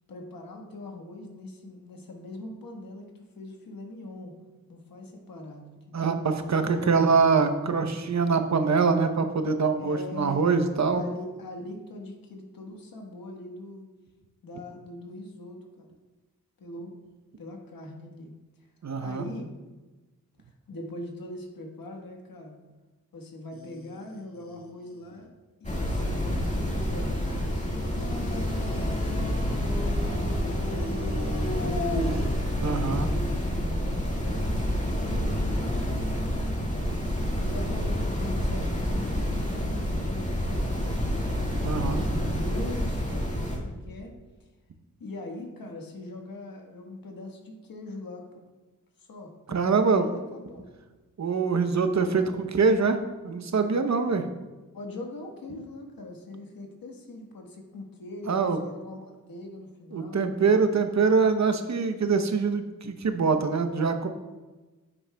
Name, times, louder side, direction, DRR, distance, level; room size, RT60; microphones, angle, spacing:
voice 1, 0.1-4.3 4.7-6.2 6.8-6.9 9.8-10.5 10.9-13.9 14.4-15.9 16.6-17.0 17.4-18.3 19.0-19.5 20.7-22.6 23.1-25.3 25.6-29.0 29.9-32.0 32.6-36.8 37.4-41.2 41.8-44.1 45.0-48.4 49.0-50.7 54.0-54.2 54.7-60.2, left 1 dB, 75° left, 2 dB, 1.5 m, -41 dB
voice 2, 6.5-11.0 18.8-19.2 32.6-33.1 41.6-42.0 49.5-50.1 51.2-53.0 53.2-54.3 58.3-58.6 59.9-64.1, right 5 dB, 50° right, 7 dB, 0.8 m, -24 dB
sound 1, 23.5-25.2 27.1-32.5, left 1 dB, 40° left, 1.1 m, -37 dB
sound 2, 25.6-43.6, equal, 20° left, 1.9 m, -28 dB
9.6 x 8.6 x 2.3 m, 1.2 s
cardioid pair, 55°, 35 cm